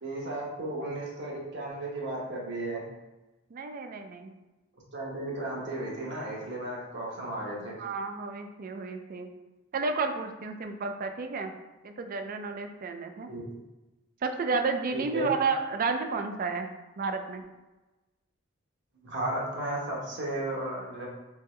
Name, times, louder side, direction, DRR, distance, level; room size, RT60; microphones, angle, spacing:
voice 1, 0.0-2.8 4.9-7.8 13.3-13.4 14.9-15.3 19.0-21.1, right 1 dB, 60° right, -3 dB, 1.1 m, -34 dB
voice 2, 3.5-4.3 7.8-9.3 9.7-11.5 11.8-13.3 14.2-16.7 17.0-17.5, right 4 dB, 45° right, 7 dB, 0.4 m, -31 dB
3.4 x 3.3 x 3.2 m, 1.1 s
head